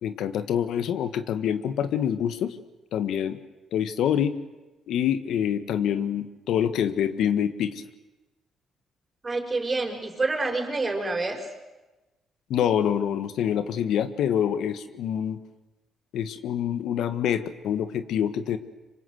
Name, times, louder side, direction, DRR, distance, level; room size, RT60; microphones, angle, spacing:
voice 1, 0.0-2.6 2.9-3.4 3.7-4.4 4.9-7.8 12.5-15.4 16.1-18.6, left 9 dB, 75° left, 11 dB, 1.6 m, -26 dB
voice 2, 9.2-11.5, right 3 dB, 25° right, 3 dB, 5.6 m, -27 dB
26.5 x 24.5 x 8.0 m, 1.1 s
cardioid pair, 90°, 0 cm